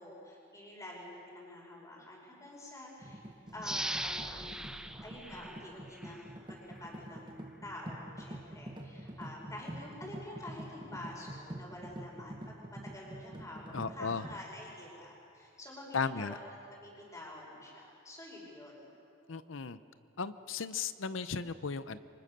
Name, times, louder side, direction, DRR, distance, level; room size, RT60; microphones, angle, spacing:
voice 1, 0.0-3.2 3.5-4.7 5.0-16.4 16.7-18.9, left 1 dB, 15° left, -2 dB, 5.5 m, -48 dB
sound 1, 3.0-14.4, right 1 dB, 25° right, 1.4 m, -47 dB
sound 2, 3.6-6.3 6.8-6.9, right 1 dB, 5° right, 0.6 m, -40 dB
voice 2, 13.7-14.2 15.9-16.4 19.3-19.8 20.2-22.0, left 5 dB, 75° left, 13 dB, 0.7 m, -35 dB
28.5 x 25.0 x 6.7 m, 2.8 s
head